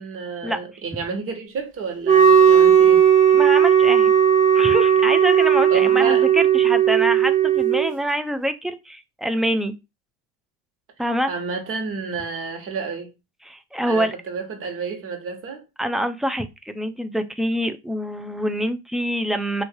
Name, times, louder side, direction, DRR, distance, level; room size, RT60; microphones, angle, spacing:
voice 1, 0.0-3.0 5.7-6.3 11.3-13.1 13.9-15.6, right 5 dB, 45° right, 1.6 m, -30 dB
Wind instrument woodwind instrument, 2.0-7.9, right 8 dB, 25° right, 1.4 m, -15 dB
voice 2, 3.3-4.1 4.5-9.7 11.0-11.3 13.5-14.1 15.8-19.6, equal, ahead, 0.5 m, -25 dB
3.1 x 2.7 x 4.5 m
supercardioid pair, 105°, 31 cm